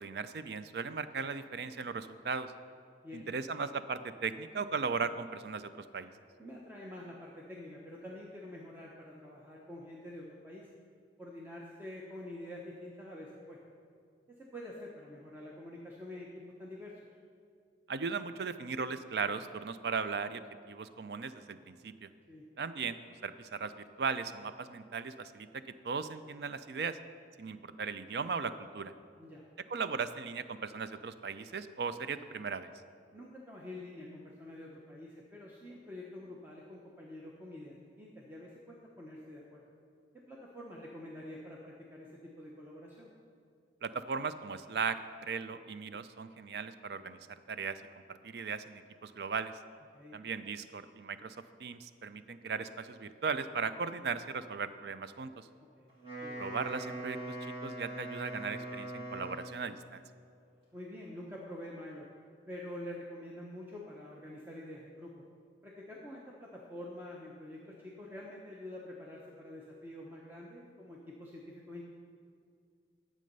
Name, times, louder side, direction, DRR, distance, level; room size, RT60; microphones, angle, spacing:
voice 1, 0.0-2.5 3.1-6.1 17.9-22.1 22.6-27.0 27.4-28.9 29.7-32.7 43.8-47.8 48.1-49.5 50.1-55.5 56.4-60.0, right 5 dB, 65° right, 12 dB, 0.4 m, -37 dB
voice 2, 6.4-10.7 11.2-13.6 14.3-16.9 22.3-22.5 29.2-29.5 33.1-39.6 40.1-43.1 49.9-50.2 55.8-55.9 56.2-56.4 60.7-62.1 62.5-65.1 65.6-71.8, left 1 dB, 10° right, -3 dB, 0.8 m, -47 dB
Wind instrument woodwind instrument, 55.9-59.8, right 1 dB, 30° right, 3.1 m, -42 dB
11.0 x 7.6 x 5.4 m, 2.3 s
head